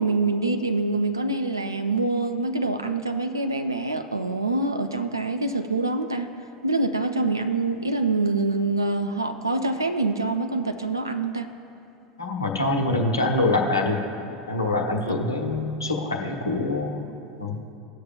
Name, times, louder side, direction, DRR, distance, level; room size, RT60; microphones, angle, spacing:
voice 1, 0.0-6.3 6.6-11.5, right 3 dB, 85° right, 7 dB, 0.4 m, -25 dB
voice 2, 12.2-14.0 14.5-17.0 17.4-17.6, left 2 dB, 85° left, 1 dB, 0.9 m, -25 dB
19.0 x 6.7 x 2.4 m, 2.6 s
figure-of-eight pair, 75°, 2 cm